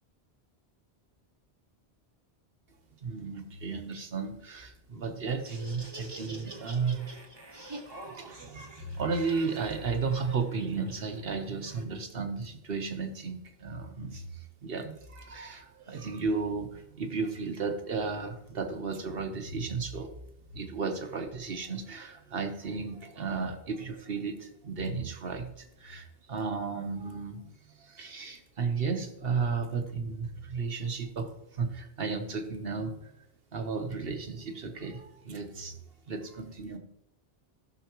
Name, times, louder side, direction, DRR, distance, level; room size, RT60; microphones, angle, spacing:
voice 1, 3.0-7.1 7.9-20.1 20.5-27.4 27.8-33.1 33.5-35.8 36.1-36.8, right 4 dB, 60° right, 6 dB, 1.3 m, -34 dB
Laughter, 5.3-11.8, right 2 dB, 25° right, 1.1 m, -47 dB
15.0 x 6.3 x 3.0 m, 0.81 s
omnidirectional pair, 1.1 m